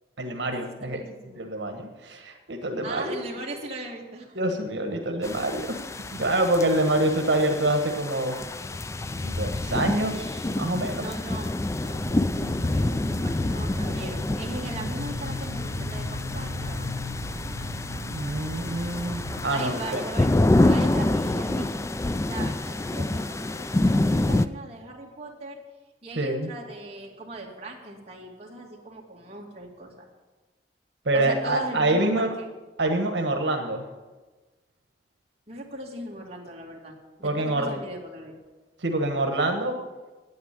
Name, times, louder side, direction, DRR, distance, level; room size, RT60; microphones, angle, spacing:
voice 1, 0.2-1.0 1.4-3.2 4.3-5.8 6.1-8.4 9.1-11.1 18.1-20.0 26.1-26.5 31.0-32.3 32.8-33.9 37.2-37.7 38.8-39.8, right 1 dB, 85° right, 4 dB, 1.3 m, -26 dB
voice 2, 0.8-1.5 2.8-4.4 10.9-16.9 19.5-25.6 26.0-30.1 31.1-32.5 35.5-36.9 37.2-38.3, right 2 dB, 35° right, -1 dB, 2.4 m, -39 dB
sound 1, 5.2-24.5, left 2 dB, 15° left, 0.3 m, -27 dB
sound 2, 11.9-19.4, left 1 dB, 40° left, 3.6 m, -34 dB
9.4 x 9.0 x 9.8 m, 1.2 s
head